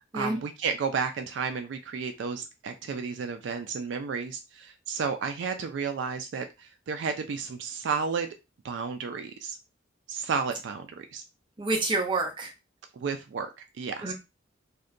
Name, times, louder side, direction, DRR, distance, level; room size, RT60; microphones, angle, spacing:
voice 1, 0.1-8.3 8.6-9.6 10.1-11.2 12.9-14.1, right 5 dB, 70° right, 7 dB, 0.3 m, -32 dB
voice 2, 11.6-12.5 14.0-14.1, right 2 dB, 25° right, 0 dB, 0.6 m, -28 dB
2.7 x 2.1 x 2.5 m, 0.25 s
head